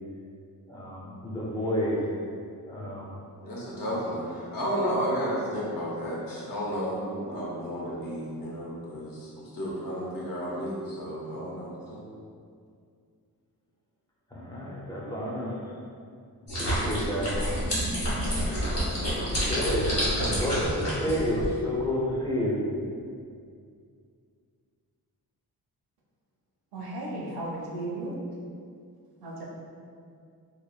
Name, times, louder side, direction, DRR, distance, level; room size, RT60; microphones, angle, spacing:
voice 1, 0.7-2.1 2.7-3.1 14.3-15.6 16.5-17.4 19.3-20.0 20.4-22.6, equal, 10° left, -5 dB, 0.4 m, -30 dB
voice 2, 3.4-12.0, equal, 60° left, -5 dB, 0.7 m, -32 dB
sound 1, 16.5-21.5, equal, 40° left, 1.2 m, -28 dB
voice 3, 26.7-28.1 29.2-29.5, right 2 dB, 75° right, -3 dB, 0.6 m, -35 dB
2.9 x 2.1 x 2.3 m, 2.3 s
wide cardioid pair, 105°, 38 cm